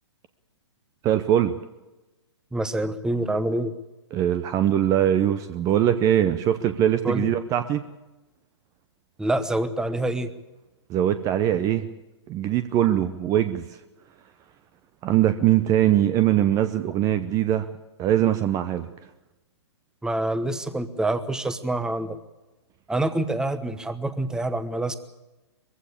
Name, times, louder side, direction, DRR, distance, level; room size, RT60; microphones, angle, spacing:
voice 1, 1.0-1.5 4.1-7.8 10.9-11.9 12.3-13.8 15.0-17.7 18.0-18.9, right 11 dB, 25° right, 11 dB, 0.8 m, -22 dB
voice 2, 2.5-3.7 7.0-7.3 9.2-10.3 20.0-22.2 22.9-24.9, right 1 dB, 5° right, 12 dB, 1.1 m, -26 dB
22.0 x 15.5 x 8.5 m, 1.1 s
figure-of-eight pair, 125°, 15 cm